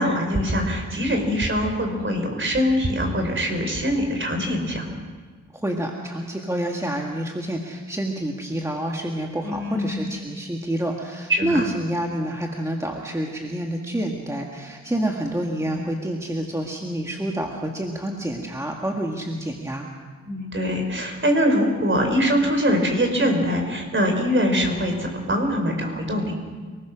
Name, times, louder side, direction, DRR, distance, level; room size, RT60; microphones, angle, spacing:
voice 1, 0.0-4.9 9.4-10.2 11.3-11.7 20.3-26.3, equal, 40° right, 3 dB, 5.1 m, -23 dB
voice 2, 5.5-19.9, right 1 dB, 10° right, 0 dB, 1.9 m, -28 dB
28.5 x 20.0 x 6.3 m, 1.5 s
wide cardioid pair, 125°, 30 cm